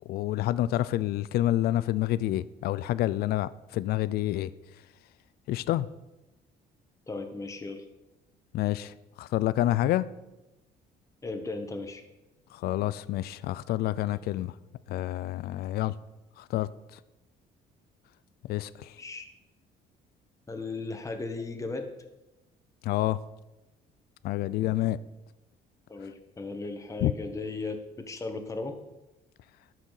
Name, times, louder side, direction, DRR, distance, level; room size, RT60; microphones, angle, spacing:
voice 1, 0.1-4.5 5.5-5.9 8.5-10.1 12.5-14.5 14.9-15.9 16.4-17.0 18.4-19.0 22.8-23.2 24.2-25.0 27.0-27.1, left 14 dB, 65° left, 17 dB, 0.4 m, -28 dB
voice 2, 7.1-7.8 11.2-12.0 19.0-19.3 20.5-21.9 25.9-28.8, left 3 dB, 20° left, 5 dB, 1.4 m, -36 dB
12.0 x 6.2 x 6.5 m, 1.0 s
cardioid pair, 110°, 17 cm